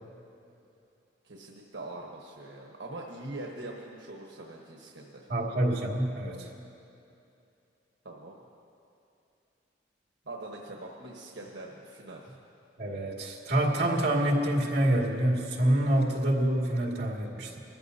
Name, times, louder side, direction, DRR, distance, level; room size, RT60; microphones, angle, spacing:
voice 1, 1.2-5.3 8.0-8.4 10.3-12.3, right 2 dB, 90° right, -1 dB, 1.2 m, -43 dB
voice 2, 5.3-6.5 12.8-17.6, right 1 dB, 60° right, -2 dB, 2.2 m, -27 dB
22.5 x 14.0 x 2.8 m, 2.7 s
head